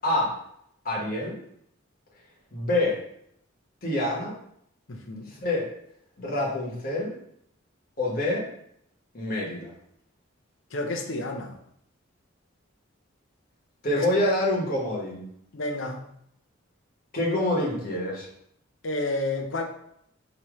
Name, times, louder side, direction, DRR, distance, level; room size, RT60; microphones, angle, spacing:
voice 1, 0.0-0.3 0.8-1.4 2.5-3.0 3.8-4.4 5.3-5.7 6.2-7.1 8.0-8.5 9.1-9.7 13.8-15.3 17.1-18.3, left 1 dB, 45° left, -3 dB, 1.3 m, -26 dB
voice 2, 4.9-5.3 10.7-11.6 14.0-14.1 15.5-16.0 18.8-19.6, left 2 dB, 70° left, 2 dB, 0.7 m, -30 dB
5.0 x 3.0 x 3.1 m, 0.71 s
head